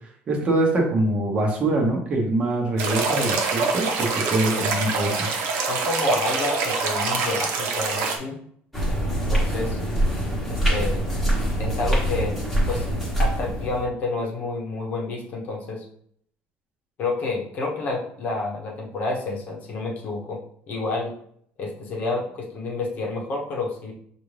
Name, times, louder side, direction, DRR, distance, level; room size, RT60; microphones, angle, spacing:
voice 1, 0.3-5.3, right 2 dB, 25° right, 1 dB, 1.0 m, -24 dB
sound 1, 2.8-8.2, right 4 dB, 75° right, 0.8 m, -25 dB
voice 2, 5.7-8.4 9.3-9.8 10.5-11.0 11.6-12.3 12.7-12.9 13.2-15.8 17.0-20.4 20.7-21.1 21.6-23.9, left 3 dB, 40° left, -1 dB, 0.9 m, -29 dB
sound 2, 8.7-13.8, right 1 dB, ahead, 1.2 m, -24 dB
5.8 x 2.5 x 3.3 m, 0.66 s
cardioid pair, 175°, 4 cm